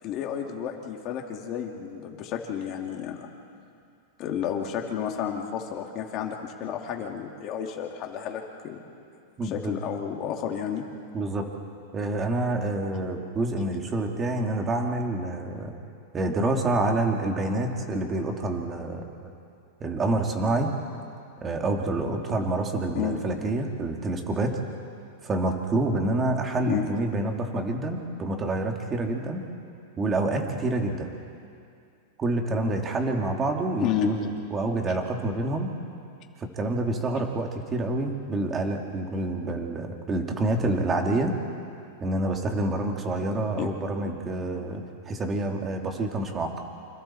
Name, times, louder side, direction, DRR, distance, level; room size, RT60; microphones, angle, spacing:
voice 1, 0.0-3.3 4.2-8.8 9.4-10.8 22.9-23.2 26.7-26.8 33.8-34.2 43.6-43.7, left 9 dB, 35° left, 1 dB, 2.7 m, -31 dB
voice 2, 9.4-9.8 11.1-11.5 11.9-15.7 16.1-19.3 19.8-20.7 21.4-24.6 25.2-29.4 30.0-31.1 32.2-35.7 36.6-41.3 42.0-46.6, right 2 dB, 20° right, 2 dB, 2.3 m, -27 dB
28.5 x 26.5 x 4.4 m, 2.4 s
supercardioid pair, 150°, 0 cm